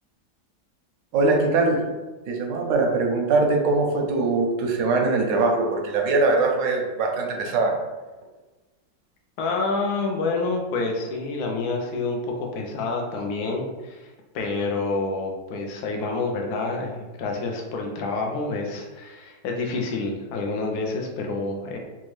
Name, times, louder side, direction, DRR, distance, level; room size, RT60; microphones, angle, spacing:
voice 1, 1.1-1.8 2.3-7.7, right 3 dB, 90° right, 1 dB, 1.3 m, -22 dB
voice 2, 9.4-21.8, left 3 dB, 70° left, 1 dB, 1.1 m, -28 dB
4.1 x 2.3 x 3.1 m, 1.2 s
omnidirectional pair, 1.9 m